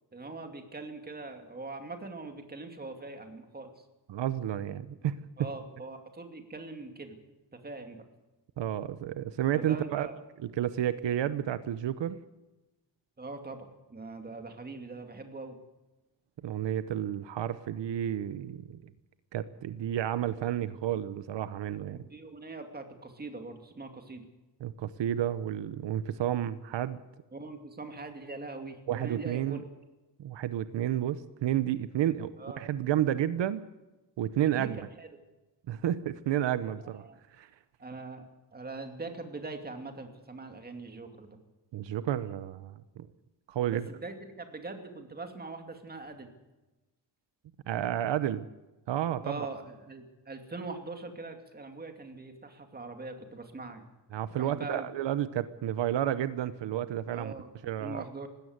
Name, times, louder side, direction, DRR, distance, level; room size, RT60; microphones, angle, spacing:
voice 1, 0.1-3.7 5.4-7.2 7.6-8.0 9.5-10.1 13.2-15.6 21.9-24.2 27.3-29.6 32.4-32.6 34.4-34.7 35.0-35.2 37.0-37.2 37.8-41.4 43.7-46.3 49.2-53.8 54.4-54.9 57.1-58.3, right 3 dB, 20° right, 5 dB, 2.5 m, -42 dB
voice 2, 4.1-5.1 8.6-10.1 10.4-12.2 16.4-18.8 19.3-22.0 24.6-27.0 28.9-29.6 30.2-32.3 32.6-33.6 34.2-34.8 35.7-37.0 37.3-37.5 41.7-43.1 43.5-43.9 47.7-48.4 48.9-49.5 54.1-57.3 57.6-58.0, right 11 dB, 80° right, 14 dB, 0.9 m, -31 dB
20.0 x 16.5 x 8.0 m, 1.1 s
wide cardioid pair, 165°, 42 cm